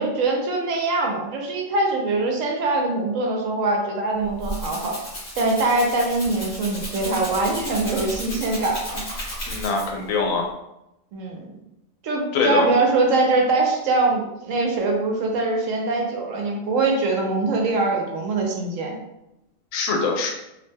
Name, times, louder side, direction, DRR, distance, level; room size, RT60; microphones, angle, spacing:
voice 1, 0.0-5.0 5.4-9.0 11.1-11.5 12.0-18.9, right 3 dB, 80° right, 0 dB, 1.0 m, -23 dB
Rattle (instrument), 4.1-10.1, equal, 45° left, 1.2 m, -34 dB
voice 2, 9.5-10.5 12.3-12.7 19.7-20.3, left 4 dB, 90° left, 2 dB, 1.0 m, -23 dB
2.7 x 2.1 x 3.3 m, 0.90 s
omnidirectional pair, 1.4 m